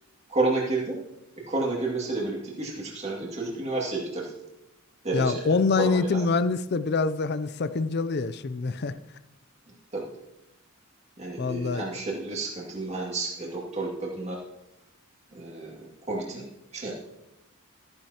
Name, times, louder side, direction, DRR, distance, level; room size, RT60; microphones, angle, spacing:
voice 1, 0.3-1.0 1.5-4.3 5.0-5.5 5.8-6.2 9.9-10.0 11.2-14.4 15.3-16.5 16.7-16.9, right 2 dB, 30° right, -3 dB, 2.3 m, -30 dB
voice 2, 5.1-9.0 11.4-11.8, left 4 dB, 50° left, 14 dB, 0.5 m, -25 dB
14.0 x 10.0 x 2.9 m, 0.89 s
head